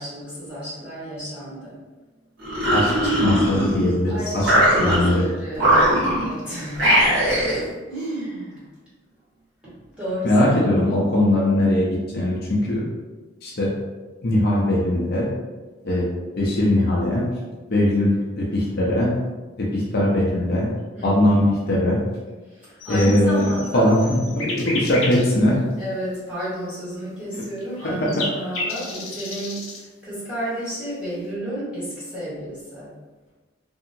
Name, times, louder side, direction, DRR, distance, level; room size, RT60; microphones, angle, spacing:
voice 1, 0.0-1.7 4.1-7.6 7.9-8.7 9.6-11.1 20.9-21.4 22.4-23.9 25.8-32.9, right 1 dB, 5° right, -11 dB, 1.3 m, -32 dB
sound 1, 2.4-3.9 4.4-5.2 5.5-6.4 6.7-7.7, right 1 dB, 65° right, 1.1 m, -19 dB
voice 2, 2.7-4.5 4.8-5.3 10.2-12.8 13.4-13.7 14.2-15.3 15.8-16.1 16.4-17.4 17.7-19.2 19.6-20.7 21.0-22.0 22.9-23.5 23.7-25.6 27.3-27.4 27.8-28.2, left 1 dB, 50° left, -4 dB, 0.5 m, -20 dB
sound 2, 22.8-25.3 25.8-25.9 27.4-29.8, left 2 dB, 90° left, 0.7 m, -32 dB
2.8 x 2.7 x 2.6 m, 1.3 s
head